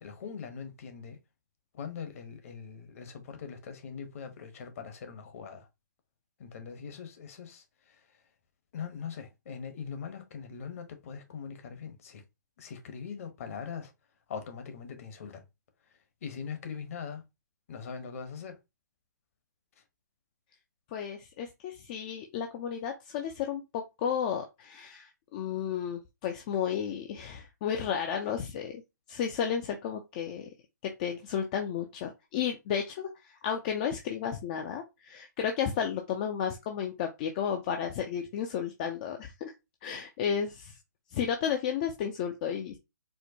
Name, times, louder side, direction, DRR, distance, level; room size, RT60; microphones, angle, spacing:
voice 1, 0.0-1.2 1.7-5.7 6.4-8.2 8.7-12.2 12.6-13.9 14.3-15.4 15.9-17.2 17.7-18.6 19.8-19.9, left 6 dB, 45° left, 1.0 m, -42 dB
voice 2, 20.9-28.8 29.1-30.5 30.8-39.5 39.8-40.8 41.1-42.8, left 8 dB, 25° left, 0.4 m, -33 dB
4.4 x 2.1 x 2.7 m
hypercardioid pair, 145°, 10 cm